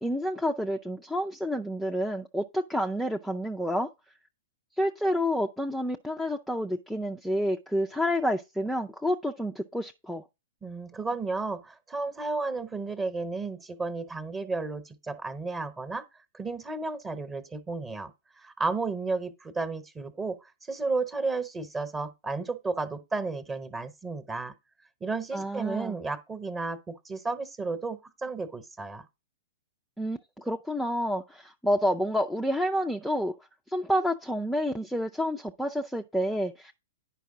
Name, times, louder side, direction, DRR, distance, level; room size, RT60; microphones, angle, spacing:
voice 1, 0.0-3.9 4.8-10.3 25.3-26.0 30.0-33.3 33.7-36.7, equal, ahead, 0.5 m, -29 dB
voice 2, 10.6-16.0 16.3-24.5 25.0-29.1, right 3 dB, 15° right, 1.1 m, -33 dB
10.0 x 5.2 x 3.8 m
figure-of-eight pair, 105°, 0 cm